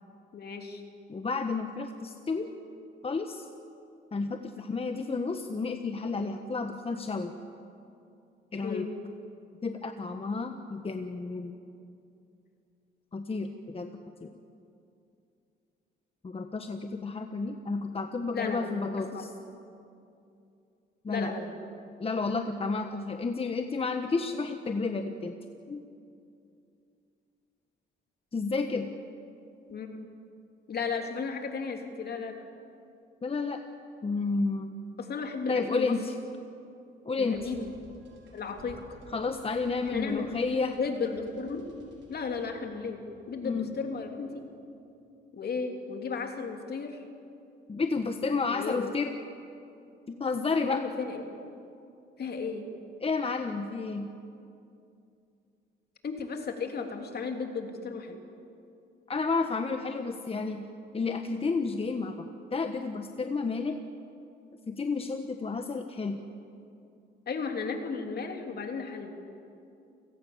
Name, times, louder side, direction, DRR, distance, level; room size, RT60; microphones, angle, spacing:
voice 1, 0.3-0.8 8.6-8.9 18.3-18.7 19.1-19.3 21.1-21.5 29.7-30.1 30.7-32.4 35.0-36.2 37.2-37.7 38.3-39.0 39.9-40.4 40.7-41.7 42.1-44.4 45.3-47.0 48.5-48.9 50.7-51.2 52.2-52.7 56.0-58.2 67.3-69.1, left 5 dB, 55° left, 4 dB, 3.1 m, -34 dB
voice 2, 1.1-2.5 3.0-3.5 4.1-7.3 8.5-8.9 9.6-11.5 13.1-13.9 14.2-14.3 16.2-19.3 21.0-21.4 22.0-25.4 25.7-25.8 28.3-28.9 33.2-33.6 34.0-34.8 35.5-36.1 37.0-37.5 39.1-40.8 43.4-43.7 47.7-49.1 50.2-50.8 53.0-54.1 59.1-60.6 60.9-63.8 64.7-66.2, left 4 dB, 30° left, 6 dB, 1.3 m, -31 dB
sound 1, 37.3-44.6, right 2 dB, 70° right, 5.7 m, -55 dB
29.5 x 17.5 x 7.3 m, 2.6 s
cardioid pair, 90°, 20 cm